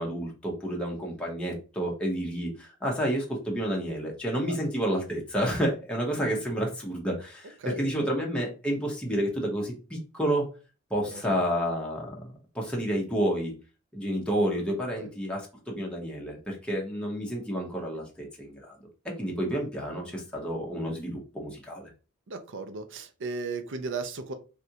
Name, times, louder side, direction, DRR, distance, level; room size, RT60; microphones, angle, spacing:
voice 1, 0.0-10.5 10.9-13.5 13.9-21.9, equal, 5° left, -2 dB, 0.8 m, -30 dB
voice 2, 7.6-8.1 11.1-11.2 15.0-15.1 19.3-19.4 22.3-24.3, right 3 dB, 60° right, 8 dB, 0.6 m, -36 dB
3.4 x 2.6 x 2.8 m, 0.33 s
head